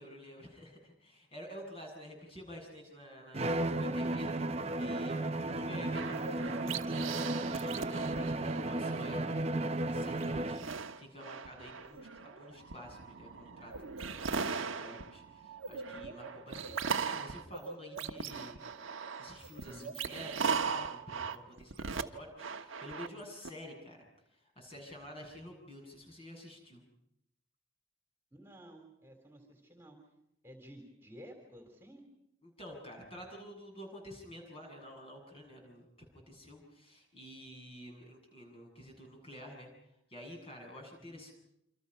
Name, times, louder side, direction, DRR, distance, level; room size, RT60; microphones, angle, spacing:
voice 1, 0.0-6.9 7.4-9.4 9.8-10.7 11.0-13.7 14.1-18.6 19.2-20.3 20.6-24.1 24.3-26.8 32.4-35.9 36.1-39.7 40.1-41.3, equal, 30° left, 2 dB, 7.3 m, -49 dB
Bowed string instrument, 3.3-10.8, right 2 dB, 30° right, 0.9 m, -34 dB
voice 2, 5.0-5.3 19.6-19.9 28.3-30.0 30.4-32.0 41.0-41.2, equal, 10° right, 3 dB, 3.5 m, -53 dB
sound 1, 5.9-9.4 9.8-23.5, right 5 dB, 85° right, 1.3 m, -39 dB
28.5 x 26.0 x 5.6 m, 0.79 s
head